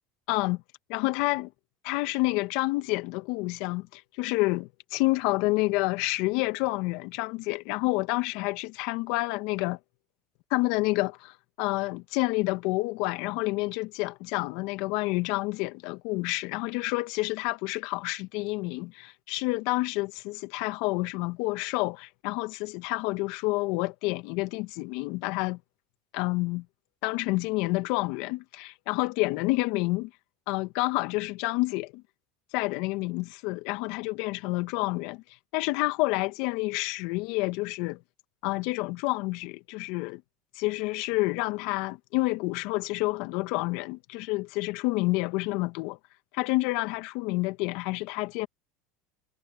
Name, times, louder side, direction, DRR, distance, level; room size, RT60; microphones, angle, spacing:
voice 1, 0.3-0.6 0.9-1.5 1.8-9.8 10.5-25.6 26.1-26.7 27.0-30.1 30.5-32.0 32.5-35.2 35.5-38.0 38.4-40.2 40.6-46.0 46.3-48.5, left 23 dB, 70° left, 1.7 m, -29 dB
hypercardioid pair, 95°, 0 cm